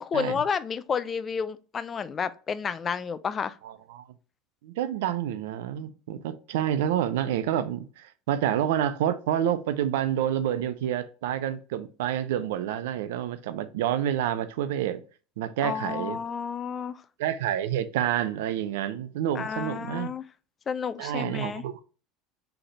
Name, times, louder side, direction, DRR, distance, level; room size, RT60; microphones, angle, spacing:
voice 1, 0.0-3.6 15.6-17.0 19.3-20.2 20.7-21.6, left 6 dB, 35° left, 0.4 m, -31 dB
voice 2, 3.6-4.0 4.6-15.0 15.4-16.2 17.2-20.1 21.0-21.8, right 10 dB, 75° right, 0.4 m, -28 dB
3.8 x 3.4 x 3.9 m
hypercardioid pair, 80°, 0 cm